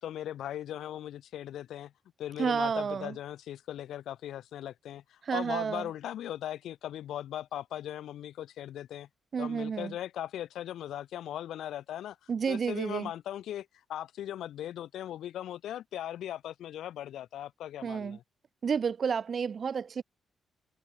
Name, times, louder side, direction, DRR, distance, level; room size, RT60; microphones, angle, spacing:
voice 1, 0.0-1.9 2.2-9.1 9.4-18.2, left 11 dB, 85° left, 4.7 m, -39 dB
voice 2, 2.4-3.2 5.3-5.9 9.3-9.9 12.3-13.1 17.8-18.2 18.6-20.0, right 6 dB, 40° right, 0.6 m, -30 dB
wide cardioid pair, 155°, 0 cm